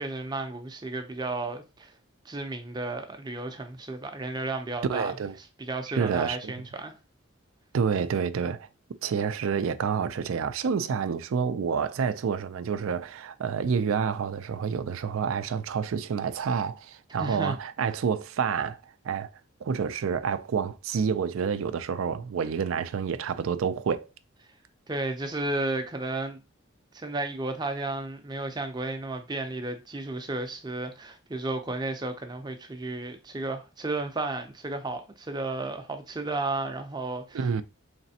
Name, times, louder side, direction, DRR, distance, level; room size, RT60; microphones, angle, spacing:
voice 1, 0.0-1.9 2.2-5.1 5.6-6.9 17.2-17.6 24.9-26.4 26.9-37.6, right 2 dB, 20° right, 0.5 m, -33 dB
voice 2, 4.9-5.4 5.9-6.5 7.7-8.7 9.0-18.8 19.0-19.3 19.6-24.1 37.3-37.6, right 6 dB, 80° right, 0.4 m, -28 dB
4.1 x 3.3 x 2.7 m
head